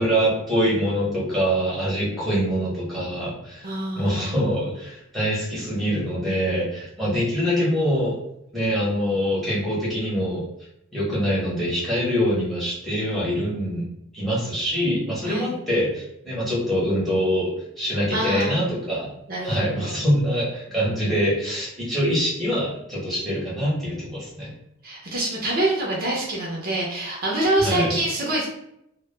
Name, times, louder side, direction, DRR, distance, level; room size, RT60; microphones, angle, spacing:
voice 1, 0.0-8.1 8.5-10.4 10.9-13.9 14.1-17.5 17.8-19.1 19.4-24.5 27.6-27.9, equal, ahead, -7 dB, 0.9 m, -24 dB
voice 2, 3.6-4.3 15.2-15.5 18.1-18.6 19.3-19.9 20.7-20.9 24.8-28.5, right 1 dB, 45° right, -3 dB, 0.6 m, -26 dB
2.2 x 2.1 x 3.2 m, 0.80 s
head